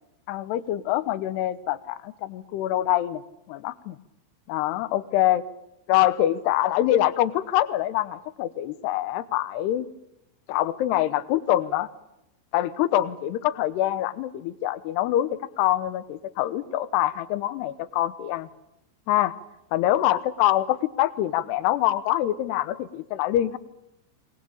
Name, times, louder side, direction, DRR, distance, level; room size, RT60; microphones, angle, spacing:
voice 1, 0.3-3.2 3.5-4.0 4.5-5.4 5.9-9.9 10.5-11.9 12.5-18.5 19.1-19.3 19.7-23.6, left 13 dB, 75° left, 14 dB, 2.7 m, -25 dB
24.0 x 20.0 x 8.7 m, 0.86 s
omnidirectional pair, 5.7 m